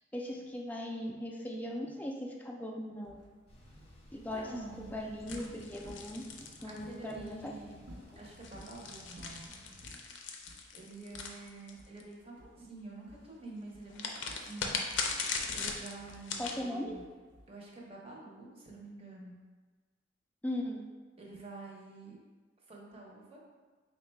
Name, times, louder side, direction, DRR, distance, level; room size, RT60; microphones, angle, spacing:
voice 1, 0.1-3.2 4.1-4.5 4.8-6.3 6.6-7.5 16.4-17.0 20.4-20.8, left 1 dB, 10° left, 0 dB, 0.3 m, -38 dB
sound 1, 3.0-6.7 7.2-7.3 7.8-8.8 9.2-9.5 9.8-10.1 10.5-10.7 11.1-12.1 12.4-12.7 13.1-13.4 13.7-17.7, equal, 90° right, 0.6 m, -55 dB
Thunder / Bicycle, 3.5-10.0, equal, 35° left, 0.7 m, -57 dB
voice 2, 4.1-5.0 6.6-7.8 8.2-9.6 10.7-14.8 15.5-17.0 17.5-19.5 21.2-22.2 22.7-23.4, right 2 dB, 30° right, -3 dB, 0.7 m, -48 dB
sound 2, 5.3-7.3 8.2-12.0 13.9-16.6, left 5 dB, 70° left, 0.4 m, -39 dB
3.6 x 2.2 x 4.3 m, 1.4 s
head